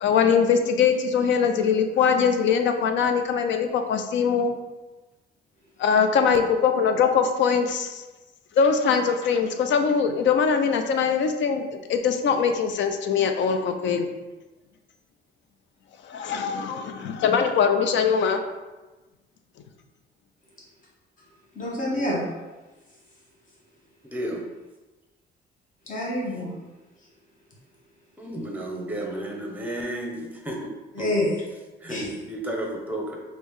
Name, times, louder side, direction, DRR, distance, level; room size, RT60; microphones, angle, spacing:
voice 1, 0.0-4.5 5.8-8.0 8.6-14.1 16.0-18.4, left 6 dB, 70° left, 7 dB, 0.4 m, -22 dB
voice 2, 21.5-22.4 25.9-26.5 30.9-31.4 31.9-32.1, left 1 dB, 40° left, -5 dB, 1.2 m, -27 dB
voice 3, 24.0-24.5 28.2-31.1 31.8-33.2, right 1 dB, 10° right, 0 dB, 0.8 m, -32 dB
3.1 x 2.7 x 3.5 m, 1.1 s
cardioid pair, 90°, 20 cm